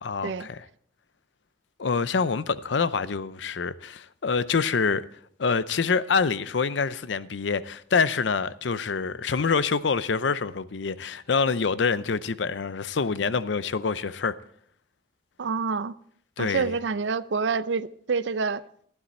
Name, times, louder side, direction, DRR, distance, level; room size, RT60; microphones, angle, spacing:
voice 1, 0.0-0.6 1.8-5.0 5.4-14.4 16.4-16.7, left 5 dB, 85° left, 0.6 m, -26 dB
voice 2, 15.4-16.0 16.4-18.6, right 5 dB, 90° right, 0.5 m, -27 dB
12.5 x 11.5 x 4.3 m
head